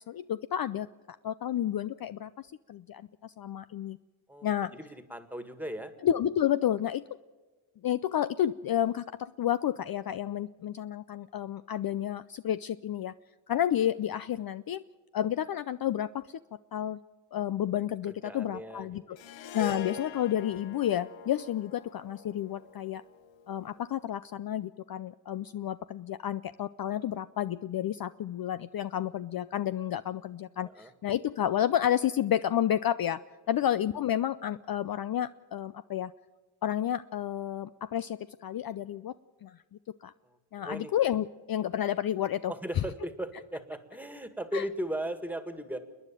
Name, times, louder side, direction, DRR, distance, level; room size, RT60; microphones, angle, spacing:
voice 1, 0.1-0.9 1.2-4.0 4.4-4.7 6.0-7.0 7.8-13.1 13.5-14.8 15.1-16.4 16.7-17.0 17.3-19.2 19.5-23.0 23.5-36.1 36.6-39.1 39.4-39.6 40.0-40.1 40.5-42.5 44.5-44.6, left 11 dB, 50° left, 14 dB, 0.5 m, -31 dB
voice 2, 4.3-5.9 18.0-19.2 19.6-19.8 30.6-30.9 40.2-40.9 42.5-45.8, right 1 dB, 5° right, 9 dB, 1.9 m, -38 dB
Harp, 19.2-23.6, left 8 dB, 70° left, 1.0 m, -43 dB
29.0 x 10.0 x 9.0 m, 1.3 s
cardioid pair, 75°, 47 cm